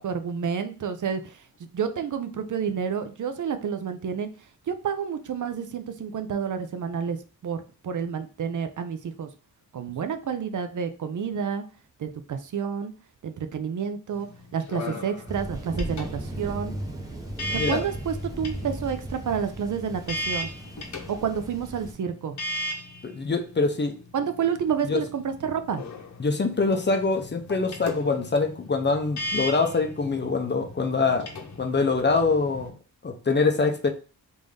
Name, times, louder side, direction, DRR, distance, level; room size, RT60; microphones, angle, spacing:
voice 1, 0.0-4.3 4.7-7.2 7.4-9.3 9.7-11.6 12.0-12.9 13.2-14.3 14.5-16.7 17.5-20.5 21.1-22.4 24.1-25.8, right 7 dB, 55° right, 0.5 m, -29 dB
sound 1, 14.1-32.7, left 1 dB, 50° left, 0.9 m, -38 dB
Thunder, 15.3-21.9, right 1 dB, 10° right, 0.6 m, -36 dB
voice 2, 23.0-23.9 24.9-25.0 26.2-31.3 31.6-32.7 33.0-33.9, left 4 dB, 30° left, 0.5 m, -24 dB
3.6 x 2.6 x 3.2 m
wide cardioid pair, 115°, 37 cm